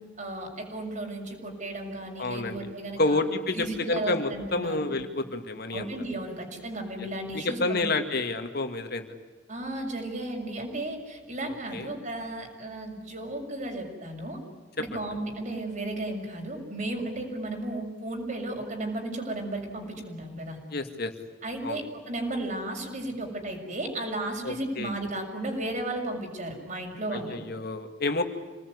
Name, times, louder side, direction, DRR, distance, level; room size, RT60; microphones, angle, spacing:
voice 1, 0.2-3.2 3.5-5.0 5.7-7.8 9.5-14.4 14.8-20.6 21.4-27.4, right 1 dB, 45° right, 2 dB, 6.8 m, -34 dB
voice 2, 2.2-2.6 3.0-5.9 7.3-9.1 11.7-11.9 14.9-15.0 20.7-21.1 21.6-21.9 24.4-24.9 27.1-28.2, left 2 dB, 60° left, 6 dB, 2.3 m, -29 dB
27.5 x 20.0 x 9.7 m, 1.3 s
head